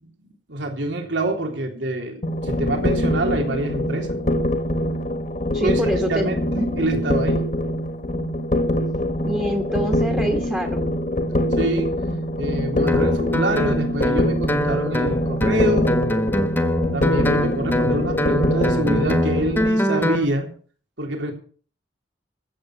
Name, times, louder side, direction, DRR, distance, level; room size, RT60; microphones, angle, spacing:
voice 1, 0.5-4.2 5.6-5.8 6.1-7.4 11.5-11.9 12.4-16.0 16.9-20.5 21.0-21.3, right 1 dB, 85° right, 2 dB, 3.5 m, -26 dB
sound 1, 2.2-19.7, left 1 dB, 40° left, 1.6 m, -24 dB
voice 2, 5.5-6.7 9.2-10.9, equal, 5° right, 3 dB, 1.4 m, -25 dB
Guitar, 12.9-20.2, left 1 dB, 10° left, 1.4 m, -23 dB
15.0 x 8.4 x 7.8 m, 0.43 s
head